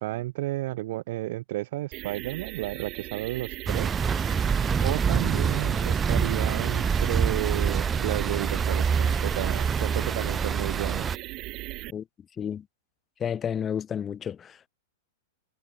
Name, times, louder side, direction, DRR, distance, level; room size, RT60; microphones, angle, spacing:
voice 1, 0.0-3.9 4.8-11.1, right 17 dB, 60° right, 1.7 m, -32 dB
sound 1, 1.9-11.9, right 21 dB, 40° right, 6.8 m, -38 dB
sound 2, 3.7-11.2, right 6 dB, 20° right, 0.4 m, -26 dB
voice 2, 13.2-14.6, left 8 dB, 25° left, 2.6 m, -31 dB
hypercardioid pair, 120°, 0 cm